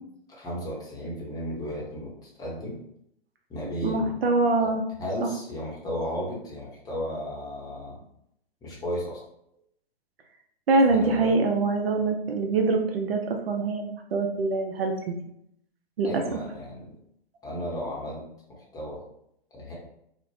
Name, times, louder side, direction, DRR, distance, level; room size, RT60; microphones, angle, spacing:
voice 1, 0.3-2.8 3.5-4.1 4.6-4.7 5.0-8.0 8.6-9.2 10.9-11.4 16.0-16.9 17.4-18.2 18.5-19.0 19.5-19.7, equal, 10° left, -4 dB, 0.7 m, -34 dB
voice 2, 3.8-4.8 5.2-5.3 10.7-15.2 16.0-16.4, right 3 dB, 70° right, 4 dB, 0.5 m, -24 dB
2.5 x 2.1 x 2.9 m, 0.75 s
figure-of-eight pair, 120°, 31 cm